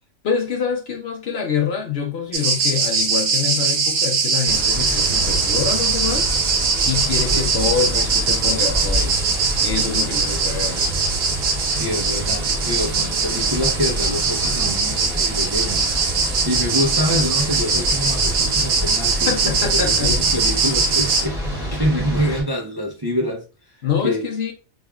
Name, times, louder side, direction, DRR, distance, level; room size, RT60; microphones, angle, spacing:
voice 1, 0.2-10.9 19.3-20.1 23.8-24.5, left 6 dB, 60° left, 0.9 m, -26 dB
sound 1, 2.3-21.3, right 4 dB, 80° right, 1.2 m, -21 dB
sound 2, 4.5-22.4, right 1 dB, 5° right, 1.6 m, -28 dB
voice 2, 10.3-10.6 11.7-15.9 16.4-23.8 24.0-24.2, equal, 30° right, 0.5 m, -26 dB
3.5 x 3.4 x 2.3 m
omnidirectional pair, 1.3 m